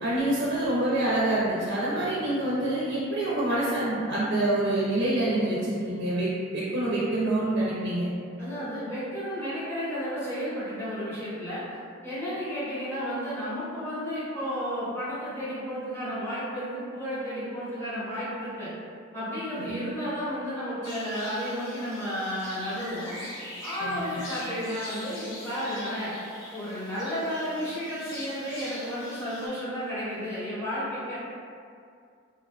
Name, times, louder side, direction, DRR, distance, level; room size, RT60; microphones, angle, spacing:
voice 1, 0.0-8.1 19.6-19.7 23.8-24.0, right 1 dB, 60° right, -7 dB, 0.4 m, -26 dB
voice 2, 8.4-11.6 12.0-18.7 19.1-23.1 23.6-26.1 26.5-31.1, equal, 15° left, -12 dB, 0.9 m, -32 dB
sound 1, 20.8-29.5, equal, 70° left, 0.9 m, -42 dB
3.4 x 2.3 x 2.2 m, 2.3 s
head